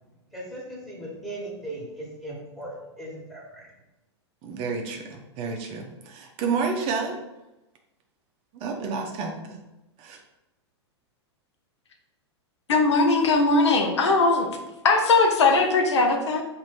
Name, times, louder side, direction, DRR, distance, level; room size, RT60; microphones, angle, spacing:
voice 1, 0.3-3.7, right 1 dB, ahead, -6 dB, 1.3 m, -38 dB
voice 2, 4.4-7.1 8.5-9.6 10.0-10.2, right 5 dB, 40° right, 2 dB, 0.6 m, -30 dB
voice 3, 12.7-14.5 14.8-16.4, left 3 dB, 75° left, 3 dB, 0.7 m, -20 dB
3.0 x 2.6 x 4.2 m, 0.98 s
hypercardioid pair, 110°, 15 cm